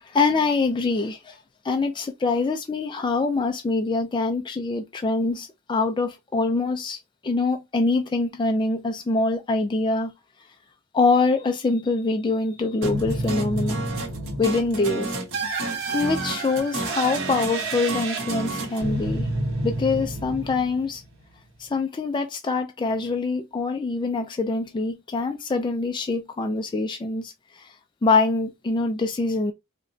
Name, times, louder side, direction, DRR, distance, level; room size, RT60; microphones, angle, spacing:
voice 1, 0.0-1.4 1.6-10.1 10.9-13.8 14.4-15.2 15.9-19.3 19.6-21.0 21.6-27.8 28.0-29.5, left 3 dB, 20° left, 0.3 m, -24 dB
sound 1, 12.8-21.1, right 2 dB, 55° right, 1.5 m, -29 dB
4.8 x 2.2 x 2.6 m
head